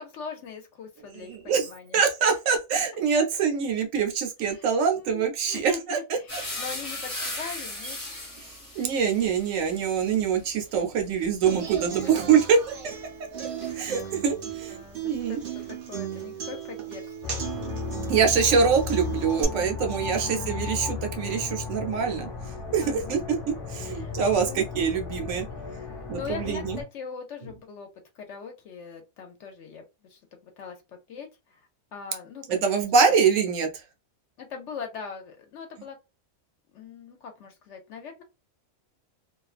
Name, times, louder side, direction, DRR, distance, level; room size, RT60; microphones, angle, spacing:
voice 1, 0.0-2.0 3.1-3.2 4.4-4.7 5.0-8.0 12.0-12.1 13.8-17.4 18.7-18.9 20.1-20.7 22.8-23.3 23.8-24.6 25.6-27.9 28.2-31.6 31.9-33.0 34.4-36.0 36.7-38.2, left 6 dB, 65° left, 0.8 m, -42 dB
voice 2, 1.3-6.0 8.8-12.6 13.4-13.5 13.8-15.4 18.1-22.3 22.7-23.4 23.7-25.5 26.1-26.8 32.5-33.7, right 6 dB, 70° right, 1.0 m, -24 dB
sound 1, 6.3-14.2 14.5-15.7, left 1 dB, 15° left, 0.8 m, -39 dB
Human voice / Acoustic guitar, 11.5-19.4, right 9 dB, 55° right, 0.6 m, -36 dB
sound 2, 17.2-26.8, left 5 dB, 40° left, 0.4 m, -35 dB
2.4 x 2.2 x 2.4 m
omnidirectional pair, 1.5 m